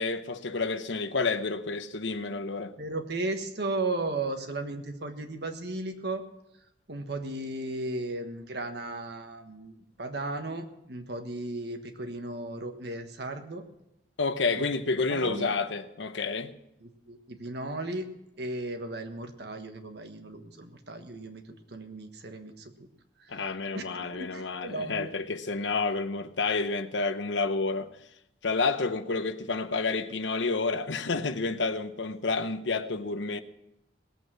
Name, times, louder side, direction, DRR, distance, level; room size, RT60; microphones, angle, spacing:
voice 1, 0.0-2.7 14.2-16.5 23.3-27.9 28.4-33.4, left 4 dB, 80° left, 0.9 m, -29 dB
voice 2, 2.8-6.2 6.9-13.6 14.6-14.7 15.1-15.5 16.8-18.1 18.4-22.9 23.2-23.5 23.7-23.8 24.1-25.1 32.4-32.5, right 2 dB, 60° right, 1.4 m, -35 dB
18.5 x 8.1 x 6.2 m
head